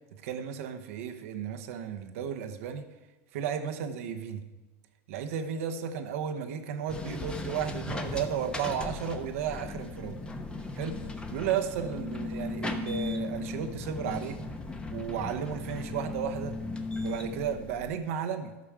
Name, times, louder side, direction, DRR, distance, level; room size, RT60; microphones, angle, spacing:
voice 1, 0.1-2.9 3.3-4.4 5.1-10.2 10.8-14.4 14.9-16.6 17.0-18.5, right 8 dB, 80° right, 6 dB, 0.9 m, -34 dB
sound 1, 6.9-18.0, left 3 dB, 15° left, 0.9 m, -37 dB
13.5 x 6.0 x 4.8 m, 1.2 s
supercardioid pair, 120°, 7 cm